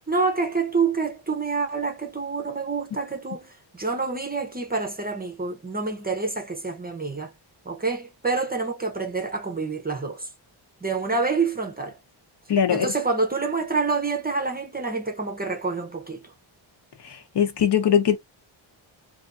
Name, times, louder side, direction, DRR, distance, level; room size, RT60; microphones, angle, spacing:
voice 1, 0.1-7.3 7.6-10.3 10.8-12.0 12.7-16.2, right 4 dB, 20° right, 0.7 m, -27 dB
voice 2, 12.5-12.9 17.0-18.2, left 8 dB, 55° left, 0.9 m, -21 dB
3.4 x 2.4 x 2.5 m
wide cardioid pair, 110°, 50 cm